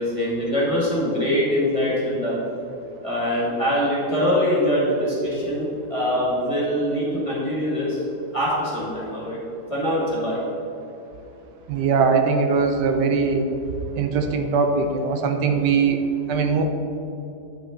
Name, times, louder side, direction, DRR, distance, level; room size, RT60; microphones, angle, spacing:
voice 1, 0.0-2.4 3.0-8.0 8.3-9.4 9.7-10.4, equal, 20° left, -6 dB, 1.5 m, -23 dB
voice 2, 11.7-13.5 13.9-16.0 16.3-16.6, right 5 dB, 80° right, 6 dB, 1.2 m, -21 dB
8.4 x 5.3 x 3.7 m, 2.8 s
omnidirectional pair, 1.8 m